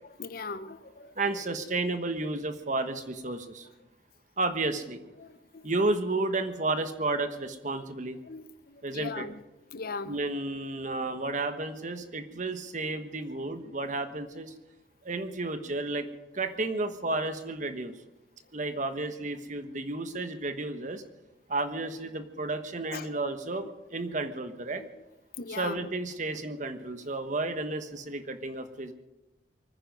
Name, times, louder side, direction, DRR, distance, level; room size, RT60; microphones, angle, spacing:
voice 1, 0.2-1.4 5.2-5.7 8.2-9.4 9.7-10.2 12.3-12.4 22.9-23.3 23.6-23.7 24.8-25.0 25.4-25.9, left 4 dB, 50° left, 13 dB, 0.7 m, -40 dB
voice 2, 1.2-3.7 4.4-5.0 5.6-8.2 8.8-9.3 10.1-14.5 15.0-16.1 16.3-18.0 18.5-21.0 21.5-24.8 25.6-28.9, right 2 dB, 40° right, 8 dB, 1.3 m, -32 dB
24.5 x 9.8 x 5.4 m, 1.0 s
head